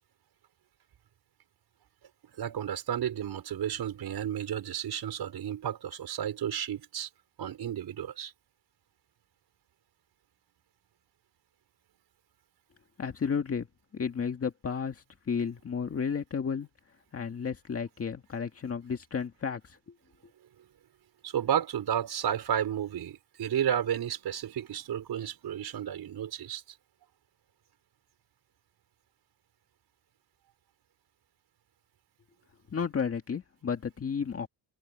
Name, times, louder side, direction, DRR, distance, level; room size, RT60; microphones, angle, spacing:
voice 1, 2.4-7.1 7.4-8.3 21.2-26.6, right 9 dB, 50° right, 5.8 m, -32 dB
voice 2, 13.0-13.7 13.9-16.7 17.1-19.8 32.7-34.5, left 6 dB, 30° left, 2.0 m, -32 dB
cardioid pair, 170°, 48 cm